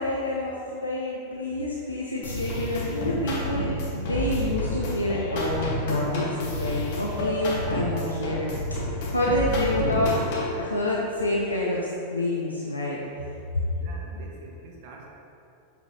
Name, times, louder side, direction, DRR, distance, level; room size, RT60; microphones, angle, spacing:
voice 1, 0.0-10.2 10.6-11.8 12.1-13.0, left 1 dB, 85° left, -5 dB, 0.6 m, -28 dB
sound 1, 2.2-10.6, left 1 dB, 50° left, 1.3 m, -29 dB
voice 2, 8.9-9.6 13.8-15.1, right 3 dB, 45° right, -1 dB, 0.9 m, -45 dB
6.4 x 5.1 x 3.0 m, 2.6 s
figure-of-eight pair, 90°, 0 cm